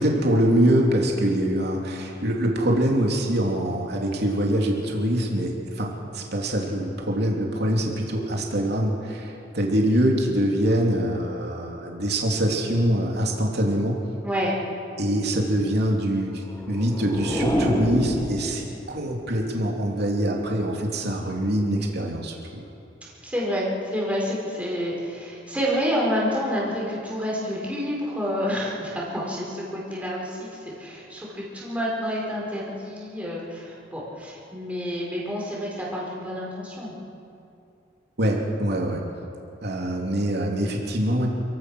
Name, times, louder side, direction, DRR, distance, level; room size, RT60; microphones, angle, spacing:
voice 1, 0.0-14.0 15.0-22.6 38.2-39.0 39.6-41.3, right 1 dB, 60° right, -1 dB, 3.2 m, -24 dB
sound 1, 16.3-19.0, equal, 15° left, 7.4 m, -27 dB
voice 2, 23.2-36.9, equal, 10° right, -5 dB, 5.0 m, -28 dB
28.5 x 16.0 x 6.3 m, 2.7 s
head